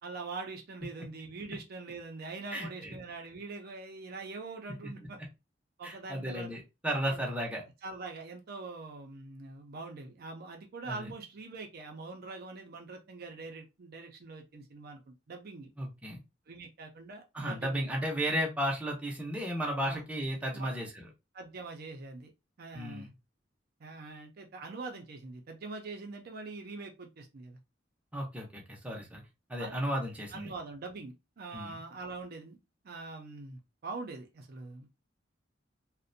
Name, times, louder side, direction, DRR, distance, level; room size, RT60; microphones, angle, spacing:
voice 1, 0.0-5.2 5.8-6.6 7.0-7.3 7.8-15.7 16.5-17.8 19.8-20.0 20.5-20.8 21.3-22.3 22.6-23.1 23.8-27.6 29.6-29.8 30.3-32.6 32.8-34.9, right 3 dB, 55° right, 0.5 m, -43 dB
voice 2, 2.5-2.9 4.8-4.9 5.8-7.6 10.8-11.1 15.8-16.2 17.3-21.1 22.7-23.1 28.1-29.2 29.5-30.5 31.5-31.8, equal, 5° right, 0.6 m, -34 dB
2.5 x 2.1 x 2.5 m
head